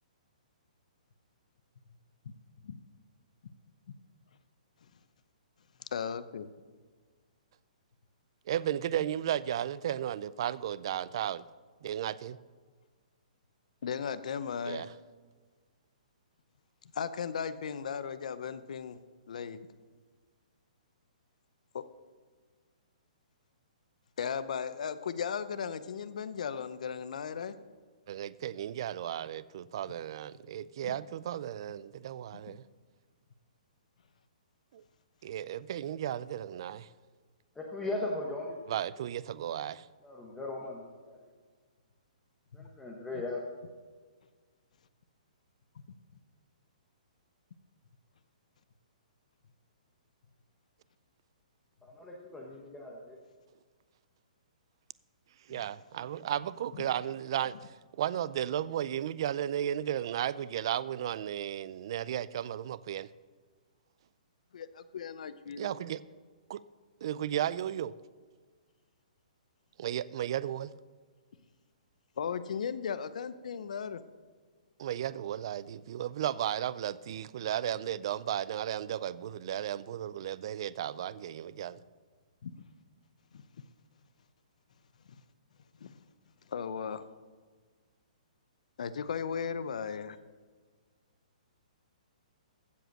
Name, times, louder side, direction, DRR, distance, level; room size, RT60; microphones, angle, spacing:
voice 1, 5.9-6.5 13.8-14.8 16.8-19.0 19.3-19.6 21.7-21.8 24.2-27.6 30.8-31.0 32.5-32.6 43.1-43.2 55.5-55.6 56.7-56.9 64.5-65.7 72.2-74.0 82.4-82.6 83.3-83.6 85.8-85.9 86.5-87.0 88.8-90.2, left 7 dB, 60° left, 0.7 m, -36 dB
voice 2, 8.5-11.4 11.8-12.4 14.7-14.9 28.1-32.6 34.7-34.8 35.2-36.9 38.7-39.9 55.5-63.1 65.6-66.0 66.5-66.6 67.0-68.0 69.8-70.7 74.8-81.8, right 11 dB, 35° right, 0.3 m, -34 dB
voice 3, 37.5-38.6 40.0-41.3 42.5-43.4 51.8-53.2, left 2 dB, 5° left, 0.8 m, -38 dB
15.5 x 5.2 x 6.5 m
hypercardioid pair, 170°, 4 cm